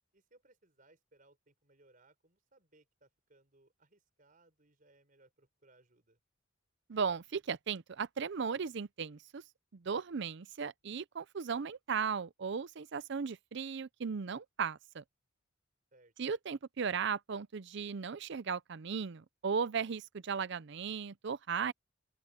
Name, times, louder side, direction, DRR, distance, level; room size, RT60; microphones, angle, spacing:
voice 1, 0.1-6.2 15.9-16.1, right 2 dB, 40° right, 4.6 m, -66 dB
voice 2, 6.9-9.4 9.7-15.0 16.2-21.7, right 6 dB, 60° right, 0.5 m, -36 dB
open air
head